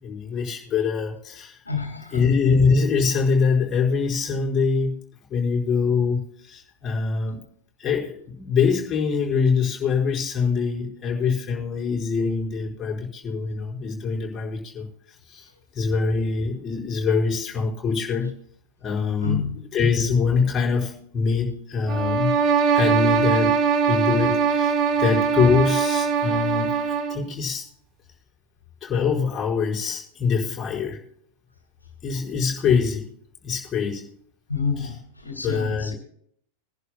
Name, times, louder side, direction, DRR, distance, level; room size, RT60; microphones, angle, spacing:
voice 1, 0.0-1.6 2.1-4.9 5.3-7.4 7.8-14.9 15.3-15.5 15.7-18.3 18.8-19.3 19.7-22.3 22.7-23.6 23.9-27.6 28.8-31.0 32.0-33.1 33.4-34.1 35.4-35.9, left 5 dB, 25° left, -3 dB, 4.8 m, -24 dB
voice 2, 1.7-2.3 19.2-19.6 34.5-35.9, left 5 dB, 80° left, 4 dB, 1.9 m, -29 dB
sound 1, 21.9-27.3, right 6 dB, 35° right, 1.2 m, -21 dB
23.5 x 11.0 x 2.2 m, 0.67 s
figure-of-eight pair, 90°, 0 cm